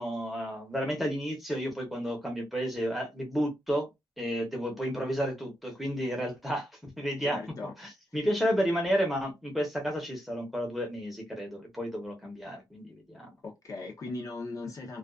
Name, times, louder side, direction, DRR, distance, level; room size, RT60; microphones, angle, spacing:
voice 1, 0.0-3.9 4.2-7.4 7.8-13.3, equal, ahead, 0.8 m, -32 dB
voice 2, 7.2-7.7 13.4-15.0, left 3 dB, 45° left, 0.6 m, -38 dB
2.3 x 2.3 x 2.3 m
wide cardioid pair, 165°, 8 cm